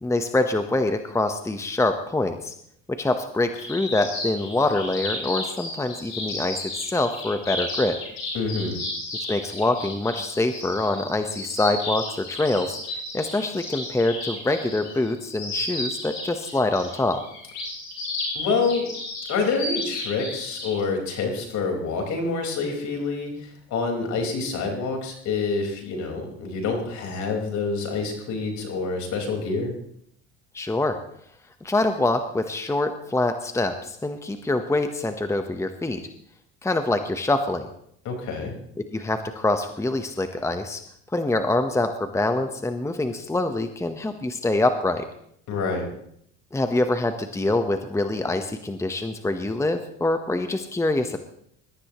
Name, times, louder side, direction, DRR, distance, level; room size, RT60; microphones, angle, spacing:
voice 1, 0.0-2.5 2.9-8.0 9.3-12.8 13.1-17.2 30.5-31.0 31.6-36.1 36.6-37.7 38.9-40.8 41.1-45.0 46.5-51.2, left 2 dB, 10° left, 7 dB, 1.1 m, -25 dB
sound 1, 3.6-20.8, left 2 dB, 85° left, 6.5 m, -33 dB
voice 2, 8.3-8.7 18.3-18.9 19.3-29.7 38.0-38.5 45.5-45.9, left 4 dB, 60° left, 2 dB, 4.8 m, -27 dB
21.5 x 13.5 x 3.1 m, 0.69 s
supercardioid pair, 95°, 32 cm